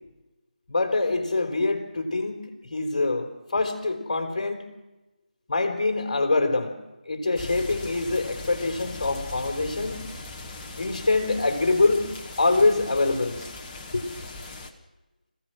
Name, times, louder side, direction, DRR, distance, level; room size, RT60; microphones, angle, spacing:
voice 1, 0.7-4.7 5.5-6.8 7.1-10.0 10.8-12.1 12.4-13.5 13.9-14.1, left 3 dB, 35° left, 2 dB, 4.0 m, -25 dB
sound 1, 7.4-14.7, left 2 dB, 15° left, 1.3 m, -39 dB
27.5 x 15.5 x 6.4 m, 1.1 s
figure-of-eight pair, 160°, 5 cm